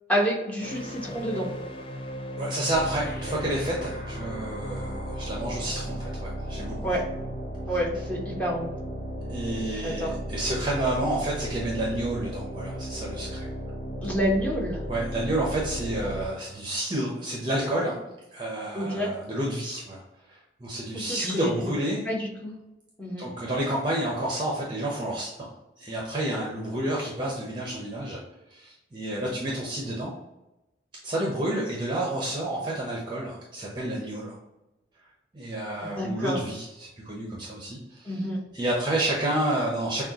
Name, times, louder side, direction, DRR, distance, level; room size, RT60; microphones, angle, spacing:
voice 1, 0.1-1.5 6.8-7.0 7.7-8.7 9.8-10.1 14.0-14.8 18.7-19.1 21.0-21.5 22.1-22.5 23.0-23.3 36.0-36.4 38.1-38.4, equal, 10° left, -3 dB, 1.0 m, -28 dB
sound 1, 0.6-5.9, equal, 30° left, 0.3 m, -38 dB
voice 2, 2.4-7.0 9.3-13.5 14.9-18.0 18.3-20.0 20.3-22.1 23.2-28.2 28.5-30.1 31.0-34.4 35.3-38.2 38.5-40.0, right 1 dB, 25° right, -3 dB, 0.8 m, -30 dB
sound 2, 2.7-16.3, equal, 65° left, 0.9 m, -35 dB
6.4 x 2.4 x 2.9 m, 0.95 s
head